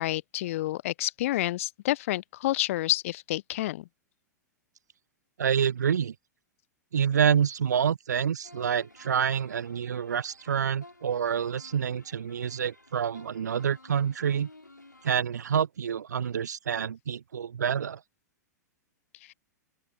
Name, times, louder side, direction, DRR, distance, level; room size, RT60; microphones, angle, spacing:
voice 1, 0.0-3.8, left 16 dB, 50° left, 0.6 m, -29 dB
voice 2, 5.4-6.1 6.9-14.5 15.0-18.0, right 8 dB, 70° right, 0.4 m, -27 dB
sound 1, 8.4-15.2, left 2 dB, 85° left, 5.5 m, -54 dB
open air
figure-of-eight pair, 100°, 10 cm